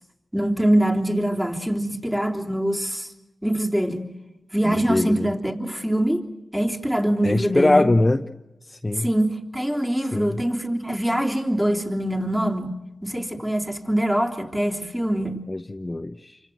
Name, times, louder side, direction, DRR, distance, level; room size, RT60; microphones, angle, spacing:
voice 1, 0.3-3.1 3.4-4.1 4.5-6.2 6.5-7.9 8.9-15.4, right 1 dB, 5° right, 1 dB, 3.3 m, -24 dB
voice 2, 4.6-5.3 7.2-8.2 8.7-9.1 10.1-10.4 15.5-16.4, left 2 dB, 25° left, 6 dB, 0.9 m, -22 dB
28.0 x 25.0 x 7.9 m, 0.96 s
cardioid pair, 55°, 0 cm